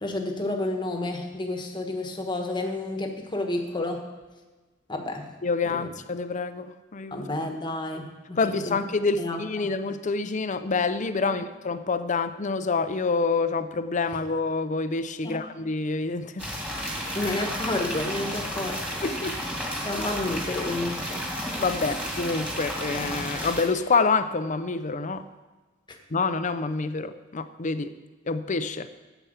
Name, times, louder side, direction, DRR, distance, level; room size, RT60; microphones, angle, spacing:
voice 1, 0.0-4.0 4.9-5.3 5.6-5.9 7.1-8.4 8.6-8.8 9.2-9.7 11.3-11.4 15.2-15.4 17.1-18.8 19.8-21.2 21.9-22.0 25.9-26.0, left 2 dB, 25° left, 3 dB, 1.3 m, -30 dB
voice 2, 5.4-7.2 8.4-16.5 19.0-19.4 21.6-25.2 26.1-27.9 28.3-28.9, left 4 dB, 40° left, 11 dB, 0.6 m, -27 dB
sound 1, 16.4-23.6, equal, 5° right, 2.6 m, -32 dB
9.2 x 7.1 x 8.0 m, 1.2 s
head